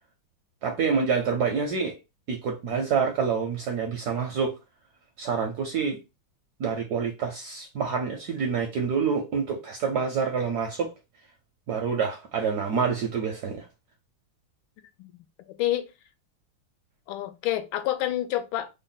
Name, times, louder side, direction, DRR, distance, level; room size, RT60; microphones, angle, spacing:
voice 1, 0.6-2.0 2.3-4.5 5.2-6.0 6.6-10.9 11.7-13.7, right 6 dB, 75° right, 0.9 m, -27 dB
voice 2, 17.1-18.7, left 13 dB, 80° left, 1.4 m, -28 dB
3.5 x 2.1 x 3.8 m
omnidirectional pair, 2.3 m